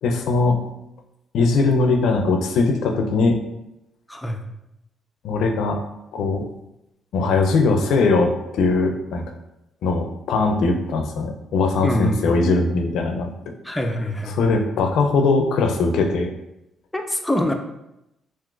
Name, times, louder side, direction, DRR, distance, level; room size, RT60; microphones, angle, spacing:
voice 1, 0.0-0.6 1.3-3.4 5.2-5.8 6.1-6.5 7.1-9.2 9.8-13.3 14.3-16.3, left 3 dB, 80° left, 4 dB, 0.4 m, -20 dB
voice 2, 4.1-4.4 11.8-12.3 13.6-14.4 16.9-17.5, left 1 dB, 10° left, 4 dB, 0.4 m, -24 dB
3.7 x 2.5 x 2.4 m, 0.87 s
cardioid pair, 90°, 0 cm